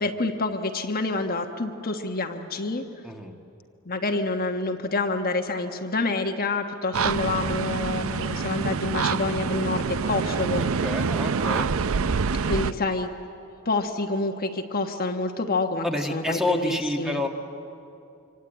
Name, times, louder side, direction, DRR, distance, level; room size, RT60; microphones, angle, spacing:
voice 1, 0.0-2.8 3.9-10.6 12.4-13.1 13.6-15.8 16.1-17.2, left 3 dB, 45° left, 4 dB, 1.3 m, -27 dB
voice 2, 3.0-3.3 10.6-11.7 15.8-17.3, left 1 dB, ahead, 3 dB, 1.5 m, -28 dB
sound 1, 6.9-12.7, right 5 dB, 65° right, 0.6 m, -26 dB
26.0 x 25.0 x 9.0 m, 2.7 s
head